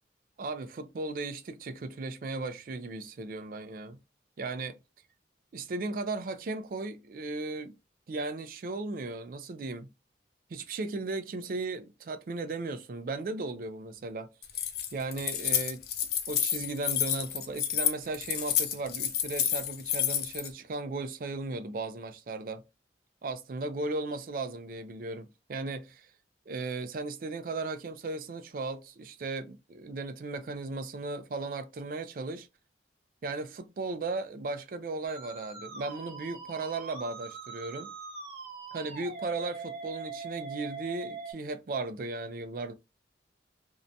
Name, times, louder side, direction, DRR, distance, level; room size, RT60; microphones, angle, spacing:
voice 1, 0.4-4.0 4.4-4.8 5.5-7.7 8.1-9.9 10.5-14.3 14.9-15.8 16.3-22.6 23.2-26.1 26.5-32.5 33.2-37.9 38.7-42.7, right 3 dB, 50° right, 0.3 m, -36 dB
Keys jangling, 14.4-20.5, left 10 dB, 60° left, 0.4 m, -30 dB
Musical instrument, 35.0-41.3, right 4 dB, 35° right, 0.9 m, -42 dB
2.6 x 2.1 x 2.6 m
head